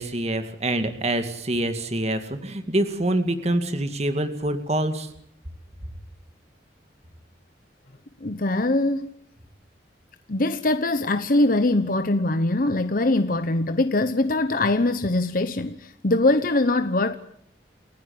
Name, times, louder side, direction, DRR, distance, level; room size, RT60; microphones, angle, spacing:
voice 1, 0.0-5.1, right 1 dB, 35° right, 2.2 m, -25 dB
voice 2, 8.2-9.1 10.3-17.2, left 2 dB, 50° left, 1.0 m, -22 dB
29.5 x 15.5 x 8.7 m
head